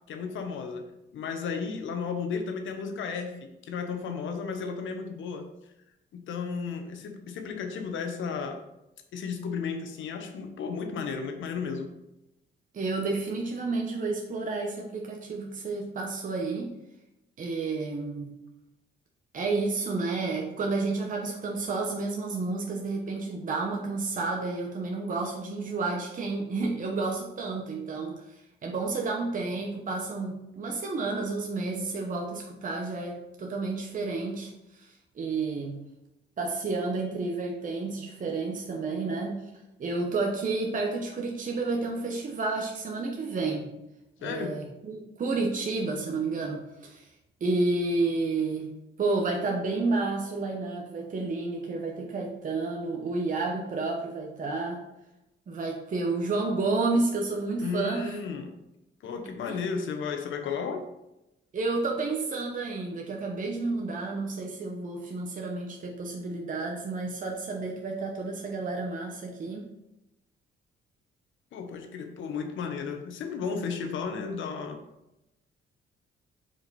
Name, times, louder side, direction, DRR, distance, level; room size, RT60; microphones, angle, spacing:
voice 1, 0.1-0.9 1.1-5.5 6.1-8.6 9.1-11.9 44.2-44.6 57.6-58.5 59.0-60.9 71.5-74.8, left 5 dB, 75° left, 6 dB, 1.1 m, -34 dB
voice 2, 12.7-16.7 17.4-18.3 19.3-35.8 36.4-39.4 39.8-43.7 44.2-47.1 47.4-48.7 49.0-54.8 55.5-58.2 59.5-59.6 61.5-69.7, right 3 dB, 40° right, 0 dB, 1.0 m, -31 dB
6.1 x 5.0 x 4.1 m, 0.91 s
cardioid pair, 90°, 20 cm